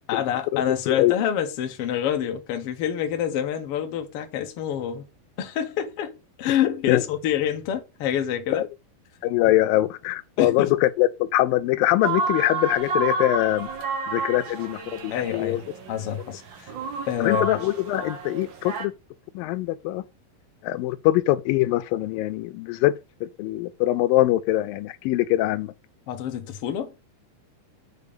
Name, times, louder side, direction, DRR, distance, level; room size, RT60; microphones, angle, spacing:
voice 1, 0.0-5.0 5.4-6.1 6.4-8.7 10.4-10.7 15.1-16.7 17.1-17.5 26.1-26.9, left 9 dB, 60° left, 1.6 m, -27 dB
voice 2, 0.5-1.1 6.9-7.0 8.5-8.7 9.2-13.7 14.1-15.6 17.2-18.9 19.4-20.0 20.6-22.9 23.2-25.7, left 15 dB, 90° left, 2.4 m, -23 dB
sound 1, 12.0-18.9, right 4 dB, 65° right, 1.1 m, -31 dB
6.9 x 4.4 x 6.8 m
omnidirectional pair, 4.0 m